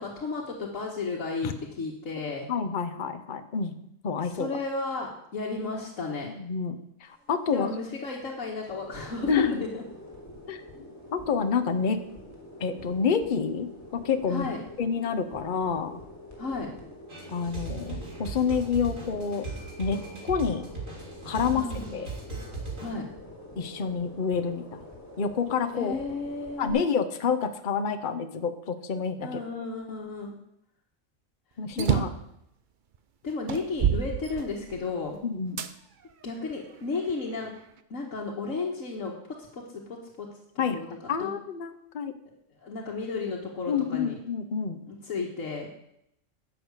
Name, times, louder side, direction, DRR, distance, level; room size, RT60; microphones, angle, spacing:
voice 1, 0.0-1.5 1.8-2.5 4.2-6.3 7.5-9.8 14.3-14.6 16.4-16.7 21.5-21.8 22.8-23.1 25.7-26.9 29.2-30.4 31.8-32.0 33.2-35.2 36.2-37.5 37.9-39.1 39.5-40.3 40.7-40.9 41.2-41.3 42.6-44.2 44.9-45.7, left 3 dB, 80° left, -2 dB, 1.9 m, -33 dB
voice 2, 2.5-3.7 4.0-4.5 6.2-6.7 7.0-7.7 9.3-9.6 10.5-10.6 11.1-12.0 12.6-14.5 14.8-16.0 17.3-19.5 19.8-20.6 21.2-21.7 21.9-22.1 23.6-24.8 25.2-26.0 26.6-29.3 31.6-32.1 35.2-35.6 40.6-40.8 41.1-42.1 43.7-44.8, left 6 dB, 45° left, 9 dB, 1.0 m, -28 dB
sound 1, 7.0-26.7, left 1 dB, 10° left, 3.4 m, -46 dB
sound 2, 17.1-22.9, right 4 dB, 85° right, 3.8 m, -38 dB
sound 3, 31.7-32.3 32.9-33.0 33.5-34.9 35.6-35.7 36.4-37.5, right 8 dB, 50° right, 0.7 m, -28 dB
11.0 x 6.4 x 8.2 m, 0.77 s
omnidirectional pair, 1.3 m